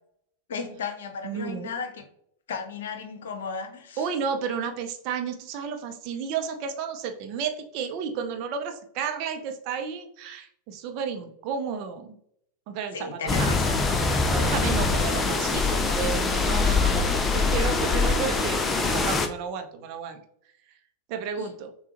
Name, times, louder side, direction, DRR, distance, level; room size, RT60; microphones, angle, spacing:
voice 1, 0.5-2.0 2.5-4.0 12.9-13.9 21.3-21.5, left 5 dB, 60° left, 7 dB, 0.8 m, -34 dB
voice 2, 1.2-1.7 4.0-12.2 12.7-13.5 14.2-20.2 21.1-21.7, right 6 dB, 45° right, 6 dB, 0.6 m, -32 dB
sound 1, 13.3-19.3, left 4 dB, 15° left, 0.5 m, -23 dB
6.7 x 2.3 x 2.9 m, 0.69 s
figure-of-eight pair, 90°, 0 cm